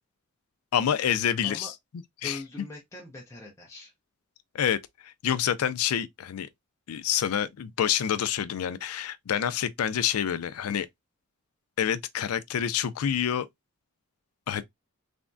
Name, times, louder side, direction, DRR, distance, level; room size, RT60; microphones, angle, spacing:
voice 1, 0.7-1.7 2.2-2.4 4.5-4.8 5.2-6.5 6.9-10.9 11.8-13.5 14.5-14.6, left 9 dB, 90° left, 0.4 m, -27 dB
voice 2, 1.4-1.7 2.2-3.9, left 1 dB, 15° left, 0.5 m, -42 dB
3.4 x 2.1 x 2.5 m
head